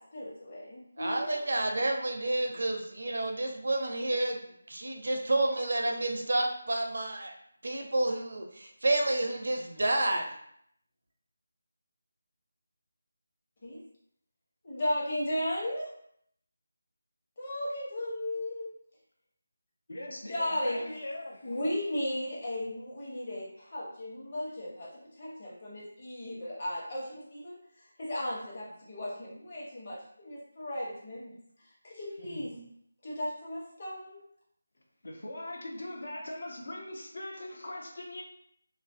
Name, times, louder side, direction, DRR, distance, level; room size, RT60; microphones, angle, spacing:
voice 1, 0.0-1.4 13.6-13.8 14.6-15.9 17.4-18.7 20.3-20.9 21.4-24.9 25.2-31.3 31.8-32.5 33.0-34.2, left 1 dB, 40° left, -5 dB, 0.9 m, -35 dB
voice 2, 1.0-4.4 4.7-7.3 7.6-10.2, right 2 dB, 70° right, 2 dB, 0.5 m, -29 dB
voice 3, 19.9-21.6 32.2-32.7 35.0-38.2, left 1 dB, 70° left, 0 dB, 0.6 m, -41 dB
2.5 x 2.2 x 2.5 m, 0.69 s
figure-of-eight pair, 160°, 0 cm